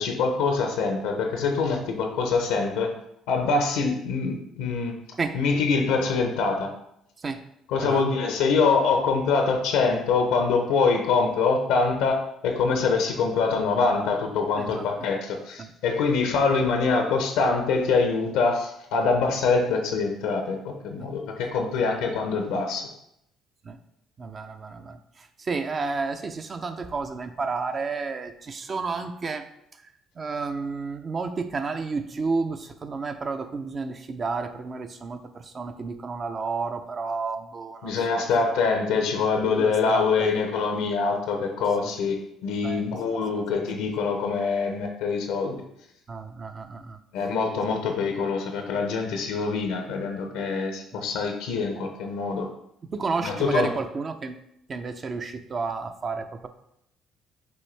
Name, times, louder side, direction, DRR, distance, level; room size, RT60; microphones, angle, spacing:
voice 1, 0.0-2.9 3.3-4.9 5.3-6.7 7.7-22.8 37.8-45.6 47.1-52.5 53.2-53.7, left 4 dB, 85° left, 4 dB, 0.6 m, -24 dB
voice 2, 14.6-14.9 15.6-15.7 21.0-21.1 23.6-23.8 24.2-29.4 30.2-38.3 39.6-40.4 41.8-41.9 42.6-42.9 46.1-47.0 50.9-51.0 52.9-54.4 54.7-56.5, right 4 dB, 40° right, 8 dB, 0.5 m, -31 dB
6.1 x 2.7 x 3.2 m, 0.77 s
supercardioid pair, 75°, 0 cm